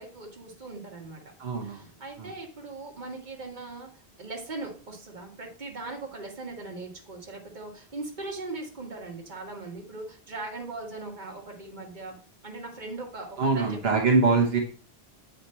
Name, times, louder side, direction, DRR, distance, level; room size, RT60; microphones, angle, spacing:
voice 1, 0.0-1.2 1.6-3.9 4.2-12.2 12.4-13.8, right 3 dB, 45° right, 1 dB, 1.7 m, -39 dB
voice 2, 1.4-1.8 2.2-2.3 13.4-14.6, right 4 dB, 70° right, 0 dB, 1.3 m, -23 dB
8.0 x 5.0 x 4.3 m, 0.41 s
omnidirectional pair, 1.1 m